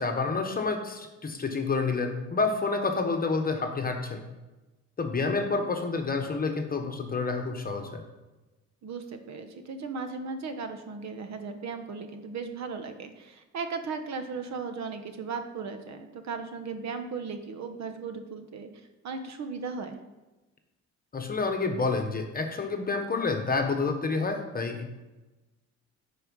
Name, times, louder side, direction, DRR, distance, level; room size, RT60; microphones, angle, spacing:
voice 1, 0.0-4.2 5.0-8.0 21.1-24.9, left 4 dB, 30° left, 4 dB, 1.2 m, -29 dB
voice 2, 8.8-18.7 19.0-20.0, right 5 dB, 65° right, 7 dB, 1.2 m, -36 dB
9.8 x 4.6 x 5.4 m, 1.1 s
cardioid pair, 90°, 30 cm